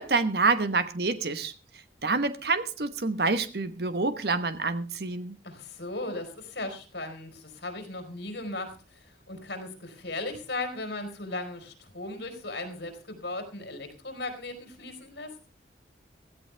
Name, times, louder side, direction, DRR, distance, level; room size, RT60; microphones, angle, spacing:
voice 1, 0.0-1.5 2.0-5.4, right 3 dB, 65° right, 1.1 m, -27 dB
voice 2, 5.4-15.3, left 2 dB, 75° left, 4.2 m, -37 dB
16.5 x 14.0 x 3.4 m
head